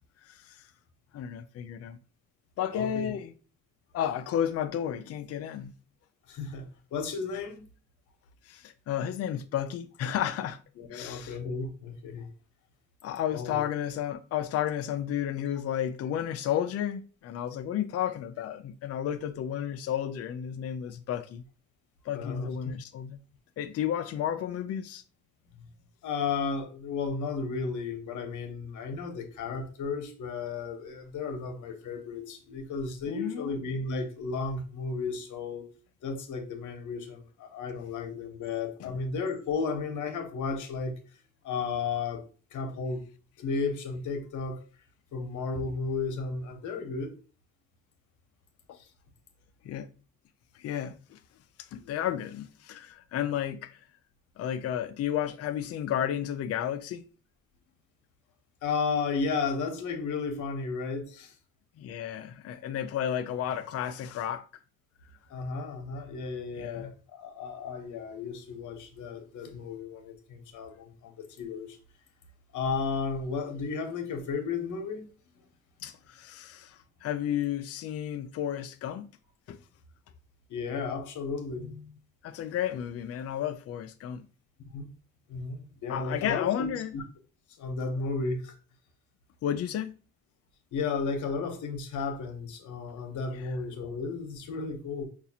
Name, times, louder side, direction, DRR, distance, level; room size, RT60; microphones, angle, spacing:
voice 1, 0.2-0.7 1.1-2.0 2.6-3.3 3.9-5.7 8.5-10.6 10.9-11.4 13.0-21.4 22.1-23.2 23.6-25.0 33.1-33.6 38.8-39.0 48.7-48.8 49.6-49.9 50.6-51.2 51.6-53.8 54.4-57.0 61.8-64.5 66.6-66.9 75.8-79.1 79.5-79.6 82.2-84.2 85.9-86.9 89.4-89.9 93.3-93.4, left 10 dB, 55° left, 0.4 m, -32 dB
voice 2, 2.7-3.2 6.3-7.6 10.8-12.3 13.3-13.6 15.5-15.6 22.1-22.5 26.0-35.7 36.0-40.9 41.4-42.2 42.5-43.0 43.4-44.6 45.1-47.2 48.7-48.9 58.6-61.3 65.3-71.8 72.5-75.0 80.5-81.9 84.7-84.9 85.3-87.0 87.6-88.5 90.7-95.0, left 4 dB, 75° left, 1.0 m, -33 dB
5.4 x 2.4 x 2.7 m
cardioid pair, 90°, 30 cm